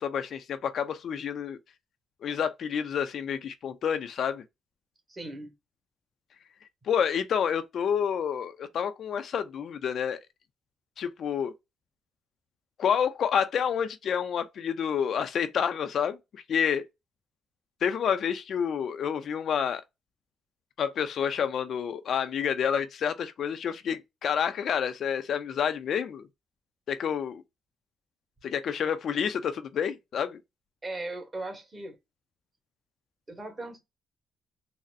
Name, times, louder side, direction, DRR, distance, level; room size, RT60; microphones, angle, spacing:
voice 1, 0.0-1.6 2.2-4.4 6.8-10.2 11.0-11.5 12.8-16.9 17.8-19.8 20.8-26.3 26.9-27.4 28.4-30.4, left 8 dB, 60° left, 0.5 m, -29 dB
voice 2, 5.1-5.5 30.8-32.0 33.3-33.8, right 2 dB, 25° right, 1.5 m, -38 dB
4.0 x 2.1 x 2.6 m
cardioid pair, 90°, 0 cm